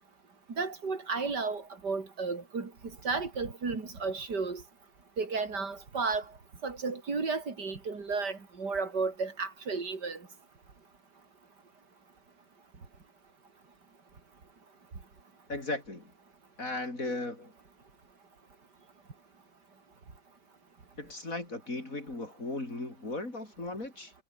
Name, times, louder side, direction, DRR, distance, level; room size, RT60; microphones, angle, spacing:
voice 1, 0.6-2.7 3.0-4.6 5.2-6.2 6.6-10.2, right 4 dB, 90° right, 3.8 m, -33 dB
voice 2, 15.5-16.1 16.6-17.5 21.0-24.1, left 2 dB, 55° left, 6.0 m, -37 dB
omnidirectional pair, 1.8 m